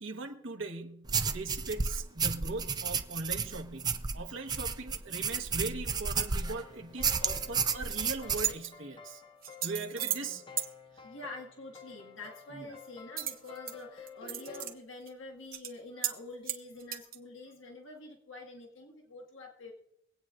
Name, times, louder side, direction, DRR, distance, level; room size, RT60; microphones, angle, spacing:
voice 1, 0.0-9.2 9.6-10.5 12.5-12.7, right 3 dB, 70° right, 2 dB, 1.2 m, -40 dB
sound 1, 1.1-6.6 7.0-8.5, right 5 dB, 20° right, 0.5 m, -32 dB
sound 2, 6.4-14.8, left 6 dB, 25° left, 0.6 m, -51 dB
sound 3, 7.6-8.0 8.3-8.7 9.4-10.3 10.6-10.7 13.2-13.7 14.1-14.7 15.1-15.2 15.5-15.7 16.0-16.2 16.5-17.2, right 11 dB, 45° right, 1.1 m, -35 dB
voice 2, 10.1-10.4 11.0-19.7, left 2 dB, 75° left, 1 dB, 1.6 m, -47 dB
24.5 x 8.8 x 2.5 m, 0.82 s
head